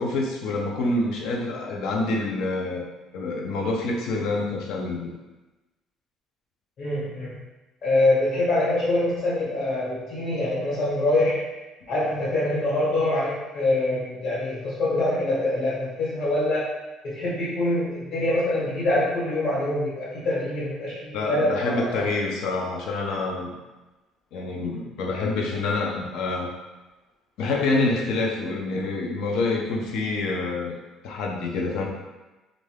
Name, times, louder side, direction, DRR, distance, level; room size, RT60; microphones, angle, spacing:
voice 1, 0.0-2.8 3.1-5.1 21.1-23.6 24.3-26.5 27.4-30.8 31.0-31.9, left 3 dB, 75° left, 0 dB, 0.5 m, -27 dB
voice 2, 6.8-7.4 7.8-11.5 11.9-16.7 17.0-22.0, left 1 dB, 55° left, -8 dB, 1.3 m, -24 dB
2.5 x 2.3 x 3.3 m, 1.1 s
cardioid pair, 130°, 0 cm